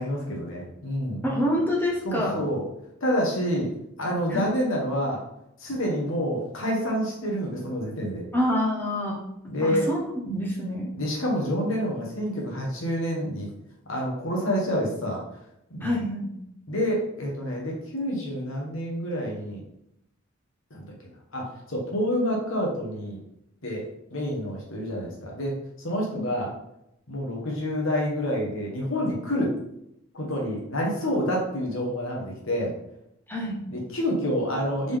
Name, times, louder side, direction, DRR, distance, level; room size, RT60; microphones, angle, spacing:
voice 1, 0.0-1.2 2.0-2.6 3.0-3.7 4.0-5.2 5.6-8.3 9.5-9.9 10.9-13.5 13.9-15.2 15.7-16.0 16.7-19.6 20.7-20.9 21.3-23.2 23.6-23.8 24.1-26.5 27.1-29.5 30.1-32.7 33.7-35.0, equal, 75° left, -2 dB, 1.3 m, -28 dB
voice 2, 1.2-2.5 4.3-4.5 8.3-9.2 9.6-10.0 10.3-10.9 15.8-16.3 26.2-26.3 33.3-33.6, equal, 10° left, -3 dB, 0.8 m, -26 dB
4.0 x 3.6 x 3.5 m, 0.79 s
head